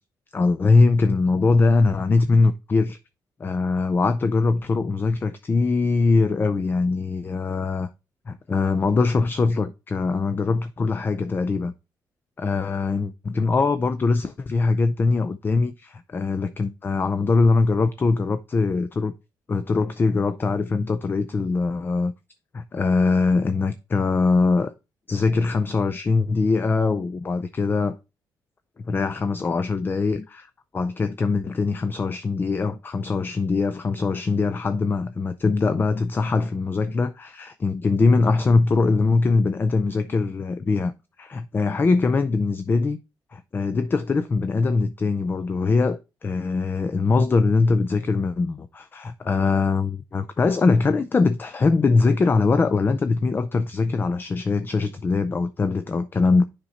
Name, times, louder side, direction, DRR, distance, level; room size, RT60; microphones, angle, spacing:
voice 1, 0.3-3.0 3.4-7.9 8.3-11.7 12.4-19.1 19.5-22.1 22.5-24.7 25.1-28.0 28.8-40.9 41.2-43.0 43.3-56.4, left 3 dB, 30° left, 0.4 m, -22 dB
7.1 x 5.2 x 4.1 m
cardioid pair, 110°, 7 cm